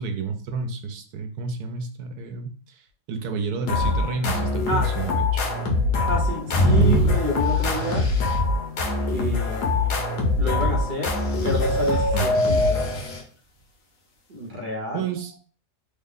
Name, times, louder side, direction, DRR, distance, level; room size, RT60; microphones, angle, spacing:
voice 1, 0.0-2.5 3.1-5.4 12.1-12.3 14.9-15.3, right 5 dB, 90° right, 5 dB, 1.2 m, -30 dB
sound 1, 3.7-13.2, left 3 dB, 80° left, 1.3 m, -24 dB
voice 2, 5.9-8.1 9.1-10.0 10.4-11.2 11.4-12.9 14.3-15.1, left 1 dB, 40° right, 0 dB, 0.8 m, -30 dB
sound 2, 6.5-8.4 11.2-13.2, right 2 dB, 65° left, 1.3 m, -24 dB
3.5 x 2.2 x 3.7 m, 0.42 s
omnidirectional pair, 1.7 m